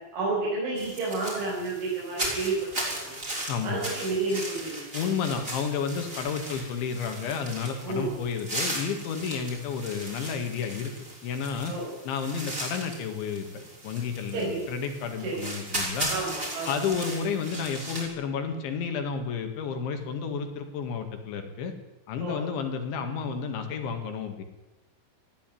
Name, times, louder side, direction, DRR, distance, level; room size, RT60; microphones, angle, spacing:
voice 1, 0.1-2.6 2.9-3.2 3.6-4.9 7.8-8.1 11.7-11.9 14.3-14.6 15.2-15.5 16.1-16.9 22.2-22.4, right 3 dB, 75° right, -7 dB, 8.9 m, -30 dB
sound 1, 0.8-18.1, right 1 dB, 15° right, 6.0 m, -37 dB
voice 2, 3.5-3.9 4.9-10.9 11.2-11.7 12.1-13.5 13.8-16.1 16.7-21.7 22.1-24.4, left 6 dB, 75° left, 6 dB, 4.3 m, -31 dB
20.5 x 14.5 x 9.4 m, 0.99 s
omnidirectional pair, 5.5 m